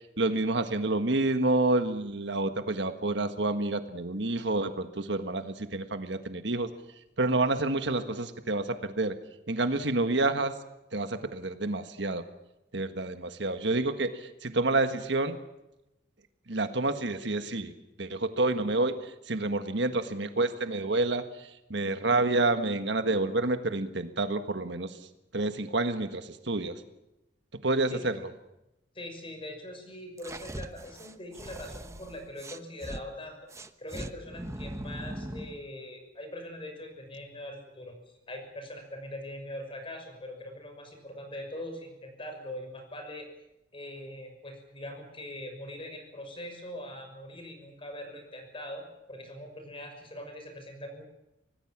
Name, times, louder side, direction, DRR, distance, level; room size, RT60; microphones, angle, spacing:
voice 1, 0.2-6.7 7.2-9.2 9.5-10.5 10.9-12.2 12.7-15.3 16.5-17.7 18.0-18.9 19.3-21.2 21.7-24.9 25.3-26.8 27.6-28.2, right 2 dB, 70° right, 8 dB, 1.6 m, -28 dB
voice 2, 28.9-33.4 33.8-43.3 43.7-51.0, left 1 dB, 30° left, 5 dB, 6.1 m, -42 dB
sound 1, 30.2-33.0 33.5-35.6, right 1 dB, 15° right, 1.0 m, -40 dB
25.5 x 19.0 x 7.4 m, 0.92 s
head